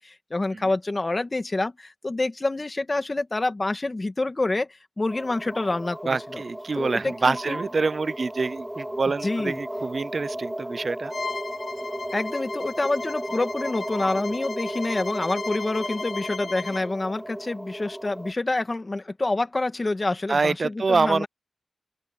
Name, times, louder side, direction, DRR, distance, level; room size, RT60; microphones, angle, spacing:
voice 1, 0.0-4.7 5.0-6.2 6.8-7.6 9.2-9.6 12.1-21.3, left 2 dB, 35° left, 1.7 m, -27 dB
sound 1, 5.1-18.3, right 1 dB, 10° right, 3.5 m, -35 dB
voice 2, 6.1-11.1 20.3-21.3, right 4 dB, 55° right, 0.5 m, -26 dB
Bowed string instrument, 11.1-16.9, left 4 dB, 70° left, 2.3 m, -36 dB
open air
wide cardioid pair, 75°, 0 cm